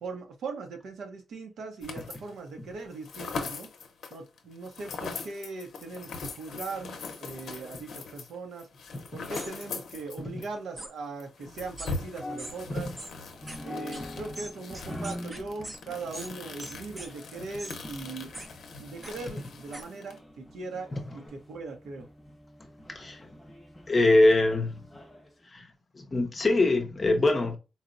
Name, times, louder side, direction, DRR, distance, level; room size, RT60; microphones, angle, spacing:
voice 1, 0.0-3.7 4.1-8.7 9.1-12.9 13.6-18.3 18.8-22.1, right 3 dB, 75° right, 0.7 m, -40 dB
sound 1, 1.8-2.4 2.7-10.5 10.8-10.9 11.2-20.2, left 4 dB, 70° left, 0.6 m, -41 dB
sound 2, 9.3-9.5 10.8-10.9 11.8-11.9 12.4-12.5 13.0-13.1 13.5-13.6 13.9-14.0 14.3-15.8 16.1-16.3 16.6-17.1 17.6-17.8 18.3-18.5 19.0-19.1 19.7-19.8, right 1 dB, 20° right, 0.5 m, -41 dB
sound 3, 12.0-25.3, left 1 dB, 5° left, 1.1 m, -45 dB
voice 2, 23.9-24.8 25.5-25.7 26.0-27.6, left 2 dB, 25° left, 0.6 m, -23 dB
4.0 x 2.1 x 2.4 m
wide cardioid pair, 155°, 0 cm